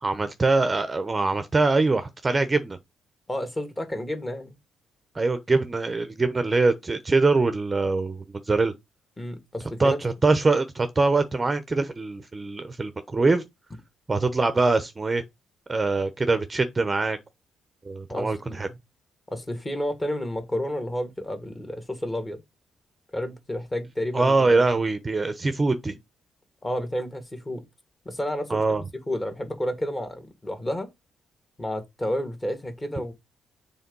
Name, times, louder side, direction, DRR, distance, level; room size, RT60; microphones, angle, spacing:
voice 1, 0.0-2.8 5.1-8.7 9.8-13.4 14.1-15.2 15.7-17.2 17.8-18.7 24.1-26.0 28.5-28.8, right 3 dB, 25° right, 0.8 m, -23 dB
voice 2, 3.3-4.6 9.2-10.0 18.1-18.8 19.3-22.4 23.1-24.6 26.6-27.6 28.1-28.6 29.1-30.9 31.6-33.1, left 1 dB, 20° left, 1.9 m, -31 dB
7.0 x 3.6 x 5.4 m
cardioid pair, 90°, 0 cm